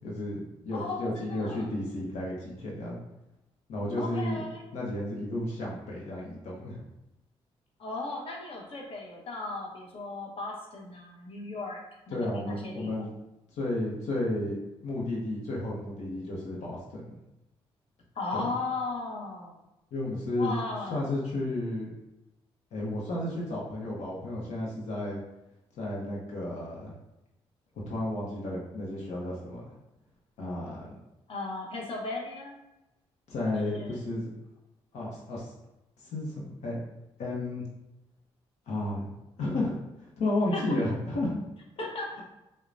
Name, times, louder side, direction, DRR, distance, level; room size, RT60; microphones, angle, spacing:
voice 1, 0.0-3.0 3.7-4.4 4.7-6.8 12.1-13.1 13.5-17.1 18.3-18.5 19.9-20.5 20.9-21.9 22.7-25.2 25.8-26.9 27.9-29.7 30.4-30.9 33.3-34.3 34.9-35.5 36.1-36.8 37.2-37.6 38.7-39.1 39.4-41.4, left 1 dB, 80° left, -4 dB, 0.9 m, -32 dB
voice 2, 0.7-1.7 3.9-4.6 7.8-12.9 18.1-19.6 20.4-21.0 31.3-32.6 33.6-34.0 40.5-40.8 41.8-42.2, left 3 dB, 55° left, -2 dB, 1.0 m, -36 dB
6.3 x 2.3 x 2.6 m, 0.94 s
cardioid pair, 85°, 11 cm